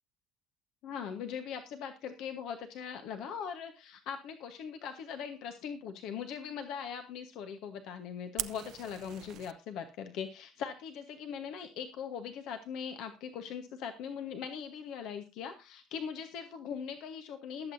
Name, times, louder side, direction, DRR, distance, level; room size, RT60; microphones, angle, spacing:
voice 1, 0.8-17.7, left 7 dB, 65° left, 7 dB, 1.2 m, -40 dB
Fire, 8.4-9.5, right 13 dB, 60° right, 0.8 m, -40 dB
21.0 x 8.0 x 2.7 m, 0.27 s
hypercardioid pair, 60°, 0 cm